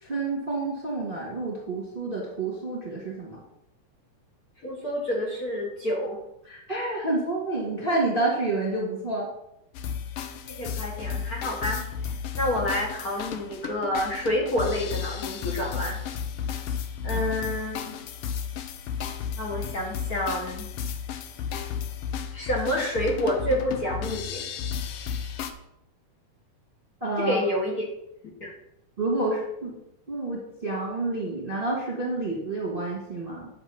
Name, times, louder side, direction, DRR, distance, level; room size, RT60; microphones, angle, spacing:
voice 1, 0.0-3.4 6.4-9.3 27.0-27.4 29.0-29.8 30.1-33.5, right 2 dB, 20° right, -3 dB, 1.7 m, -29 dB
voice 2, 4.6-6.2 10.5-16.0 17.0-17.8 19.4-20.7 22.3-24.4 27.2-27.8 28.4-28.5, equal, 45° left, -2 dB, 1.3 m, -28 dB
sound 1, 9.7-25.5, left 7 dB, 85° left, 1.3 m, -33 dB
10.5 x 6.5 x 5.4 m, 0.82 s
omnidirectional pair, 3.7 m